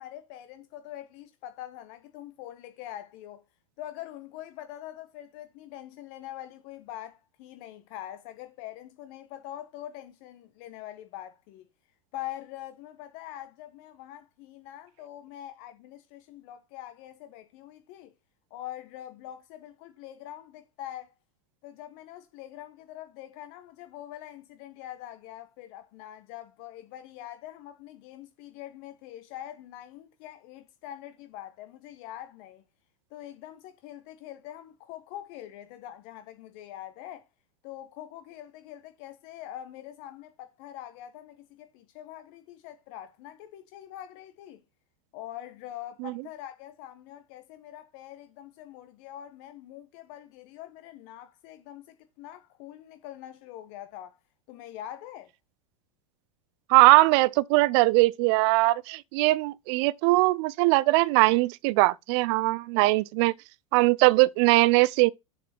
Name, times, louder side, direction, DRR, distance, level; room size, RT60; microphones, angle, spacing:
voice 1, 0.0-3.4 3.8-11.7 12.1-18.1 18.5-21.1 21.6-32.6 33.1-37.2 37.6-44.6 45.1-54.2 54.5-55.3, left 12 dB, 50° left, 1.1 m, -44 dB
voice 2, 56.7-63.3 63.7-65.1, right 21 dB, 50° right, 0.5 m, -21 dB
7.2 x 6.9 x 4.4 m
hypercardioid pair, 95°, 18 cm